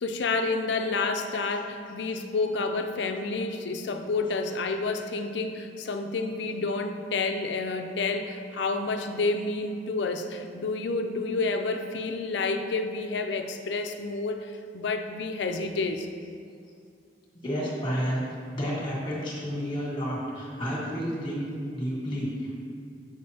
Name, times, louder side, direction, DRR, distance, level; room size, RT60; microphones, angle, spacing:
voice 1, 0.0-16.1, left 3 dB, 75° left, 6 dB, 0.5 m, -29 dB
voice 2, 17.4-18.2 18.5-22.6, equal, 30° left, -5 dB, 1.7 m, -31 dB
7.5 x 6.5 x 2.8 m, 2.3 s
head